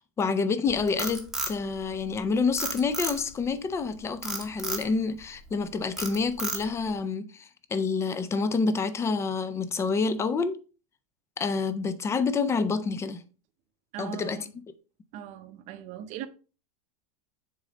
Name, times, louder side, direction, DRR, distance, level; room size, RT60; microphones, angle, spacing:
voice 1, 0.0-10.6 11.4-13.2 14.0-14.4, left 4 dB, 15° left, 0.5 m, -28 dB
Frog, 0.7-2.2 2.6-3.5 4.2-4.9 5.4-5.6 6.0-6.9, right 2 dB, ahead, 1.0 m, -32 dB
voice 2, 13.9-14.5 15.1-16.3, right 9 dB, 40° right, 0.7 m, -39 dB
6.6 x 4.0 x 3.7 m
supercardioid pair, 145°, 18 cm